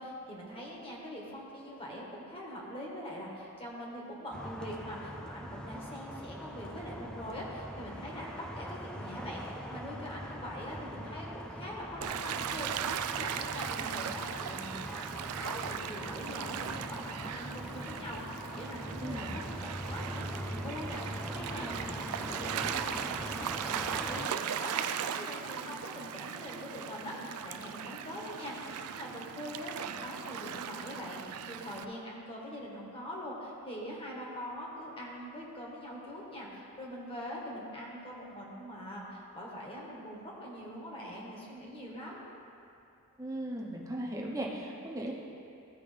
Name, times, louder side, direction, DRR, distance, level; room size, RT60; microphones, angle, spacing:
voice 1, 0.0-18.2 18.5-42.2, equal, 25° left, -3 dB, 1.4 m, -43 dB
sound 1, 4.3-24.3, equal, 5° left, 0.3 m, -42 dB
Gull seagull / Waves surf, 12.0-31.8, right 8 dB, 80° right, 0.3 m, -38 dB
voice 2, 43.2-45.1, right 1 dB, 15° right, -3 dB, 1.0 m, -37 dB
14.0 x 4.9 x 3.4 m, 2.7 s
head